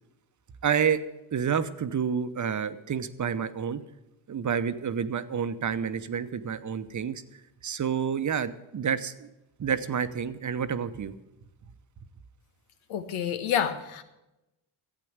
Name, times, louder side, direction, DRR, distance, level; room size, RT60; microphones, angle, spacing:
voice 1, 0.6-1.0 1.3-3.8 4.3-7.2 7.6-9.3 9.6-11.1, right 7 dB, 35° right, 11 dB, 0.9 m, -29 dB
voice 2, 12.9-14.0, left 9 dB, 80° left, 9 dB, 1.3 m, -28 dB
12.0 x 8.4 x 8.0 m, 0.94 s
supercardioid pair, 65°, 49 cm